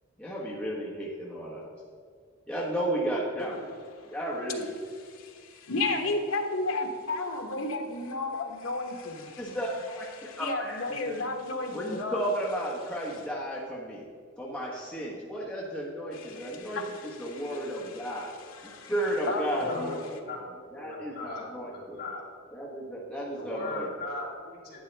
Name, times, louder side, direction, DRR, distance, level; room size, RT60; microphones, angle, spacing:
voice 1, 0.2-1.7 2.5-3.6 4.0-4.7 9.4-11.2 11.7-14.0 14.4-18.3 18.9-20.2 20.7-22.0 22.5-23.9, right 1 dB, 5° left, -6 dB, 1.3 m, -33 dB
voice 2, 3.4-3.8 5.1-9.5 10.2-12.2 16.1-18.9 19.3-20.0, left 2 dB, 75° left, 3 dB, 1.2 m, -33 dB
voice 3, 19.6-20.4 20.7-22.2 23.4-24.8, left 2 dB, 50° left, -4 dB, 2.5 m, -38 dB
11.5 x 9.3 x 3.4 m, 2.1 s
head